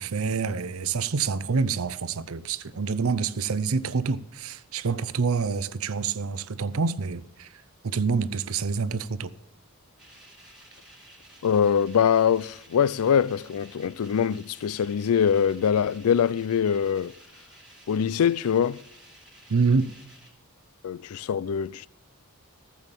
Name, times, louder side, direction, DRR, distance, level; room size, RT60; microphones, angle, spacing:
voice 1, 0.0-9.3 19.5-19.9, right 5 dB, 70° right, 0.6 m, -27 dB
sound 1, 10.0-20.3, right 1 dB, 5° right, 3.3 m, -53 dB
voice 2, 11.4-17.2 17.9-18.8 20.8-21.9, left 7 dB, 80° left, 0.4 m, -23 dB
14.5 x 7.1 x 7.3 m
head